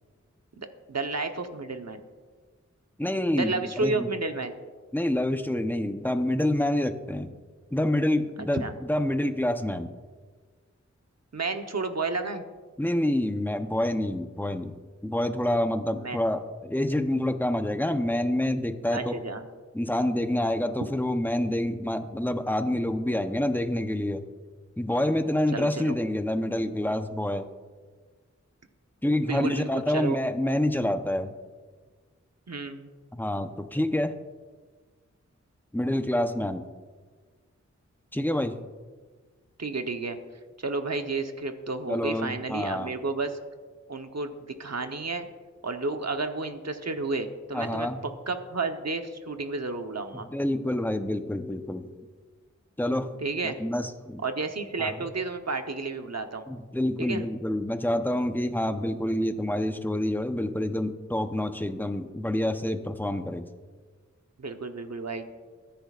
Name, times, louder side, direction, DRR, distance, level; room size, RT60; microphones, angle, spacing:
voice 1, 0.6-2.0 3.3-4.6 8.5-8.7 11.3-12.4 16.0-16.2 18.9-19.4 25.5-25.9 29.2-30.2 32.5-32.9 39.6-40.2 40.6-43.4 43.9-45.3 45.6-47.9 48.3-50.3 53.2-53.6 54.2-56.5 57.0-57.2 64.4-65.3, right 3 dB, 60° right, 6 dB, 1.1 m, -31 dB
voice 2, 3.0-3.5 3.8-4.1 4.9-7.3 7.7-9.9 12.8-14.8 15.0-19.1 19.7-24.2 24.8-27.5 29.0-31.3 33.1-34.2 35.7-36.6 38.1-38.6 41.9-42.9 47.5-48.0 50.3-51.9 52.8-53.2 53.4-54.2 54.8-55.1 56.5-63.5, left 1 dB, 5° left, 7 dB, 0.8 m, -27 dB
22.5 x 10.5 x 2.5 m, 1.5 s
wide cardioid pair, 55°, 29 cm